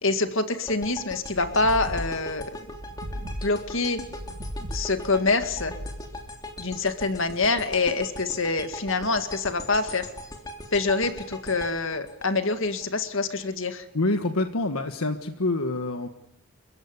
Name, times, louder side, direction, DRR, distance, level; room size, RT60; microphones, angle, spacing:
voice 1, 0.0-2.5 3.2-4.0 4.7-5.7 6.6-10.1 10.7-13.9, left 3 dB, 60° left, 8 dB, 2.0 m, -26 dB
sound 1, 0.7-12.9, left 1 dB, 15° left, 3.1 m, -40 dB
sound 2, 0.9-7.0, equal, 65° right, 3.4 m, -38 dB
voice 2, 13.9-16.1, left 2 dB, 75° left, 7 dB, 1.5 m, -26 dB
29.0 x 15.5 x 9.8 m, 0.86 s
head